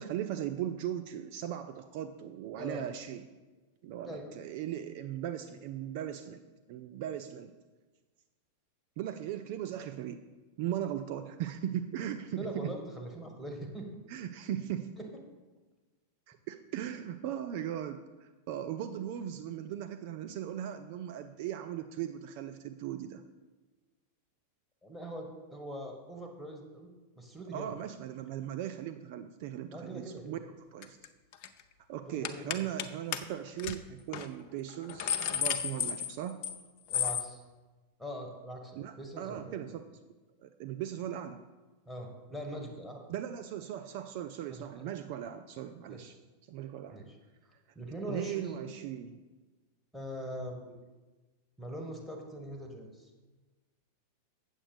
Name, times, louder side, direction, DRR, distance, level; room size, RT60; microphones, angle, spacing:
voice 1, 0.0-3.2 3.8-6.4 6.7-7.5 9.0-10.2 10.6-12.7 14.1-14.9 16.3-23.2 27.5-30.4 30.7-31.0 31.9-36.4 38.8-39.9 40.4-41.4 43.1-46.1 46.5-47.0 48.1-49.2, right 11 dB, 50° right, 9 dB, 0.4 m, -38 dB
voice 2, 2.6-2.9 4.1-4.3 12.4-14.0 15.0-15.1 24.8-27.8 29.7-30.4 32.1-32.7 36.9-37.4 38.0-39.7 41.8-43.1 44.5-44.8 45.9-46.1 46.9-47.2 47.7-48.8 49.9-50.8 51.6-53.1, equal, 5° left, 2 dB, 1.5 m, -42 dB
sound 1, 30.8-31.1 31.3-31.6 32.2-32.9 33.1-33.2 33.6-33.8 34.1-34.3 34.7-36.6 36.9-37.3, left 9 dB, 45° left, 0.5 m, -32 dB
8.2 x 7.2 x 5.0 m, 1.2 s
figure-of-eight pair, 90°, 0 cm